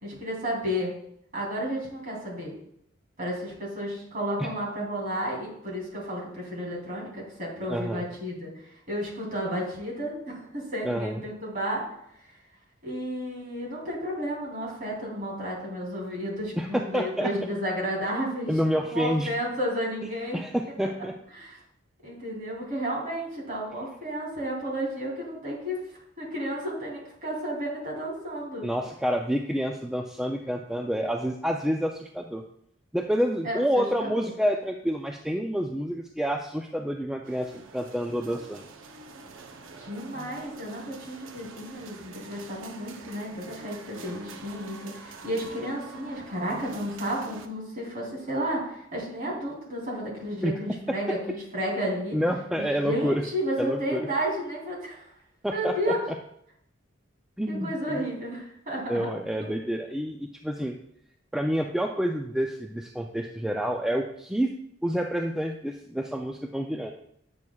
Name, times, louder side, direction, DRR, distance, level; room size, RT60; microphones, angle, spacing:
voice 1, 0.0-0.9 1.3-2.5 3.2-11.8 12.2-12.3 12.8-18.5 18.9-20.4 20.8-20.9 21.3-21.6 22.0-28.7 33.4-34.3 39.8-52.2 52.6-55.1 55.5-56.0 57.5-59.1 59.4-59.5, equal, 45° right, -4 dB, 2.8 m, -32 dB
voice 2, 7.7-8.0 10.8-11.2 16.6-17.3 18.5-19.3 20.3-21.1 28.6-32.4 32.9-38.6 50.4-50.6 52.1-53.2 53.6-54.1 55.4-55.7 57.4-58.1 58.9-60.8 61.3-64.5 64.8-66.9, equal, 5° right, 2 dB, 0.3 m, -28 dB
sound 1, 37.2-47.5, right 3 dB, 75° right, 0.7 m, -46 dB
8.4 x 6.2 x 2.3 m, 0.72 s
head